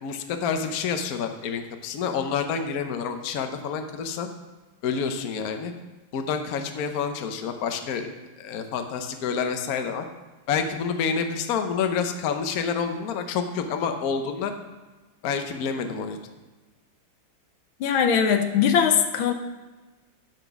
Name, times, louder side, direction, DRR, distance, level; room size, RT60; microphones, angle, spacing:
voice 1, 0.0-4.3 4.8-5.7 6.1-8.1 8.4-10.0 10.5-14.5 15.2-16.2, left 6 dB, 55° left, 6 dB, 1.1 m, -28 dB
voice 2, 17.8-19.3, left 7 dB, 80° left, 7 dB, 1.5 m, -21 dB
9.3 x 6.0 x 6.0 m, 1.2 s
omnidirectional pair, 2.2 m